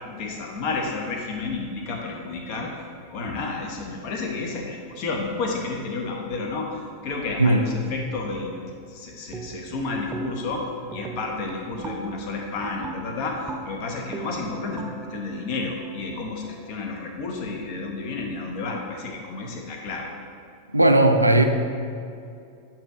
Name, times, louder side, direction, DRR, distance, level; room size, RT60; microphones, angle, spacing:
voice 1, 0.0-2.7 3.1-8.5 8.9-20.1, left 3 dB, 45° left, 1 dB, 0.9 m, -31 dB
sound 1, 9.3-9.8 10.1-10.6 10.9-16.7, right 4 dB, 20° right, 0.5 m, -39 dB
voice 2, 20.7-21.5, right 1 dB, 85° right, 6 dB, 0.4 m, -16 dB
8.6 x 2.9 x 4.9 m, 2.4 s
figure-of-eight pair, 90°, 0 cm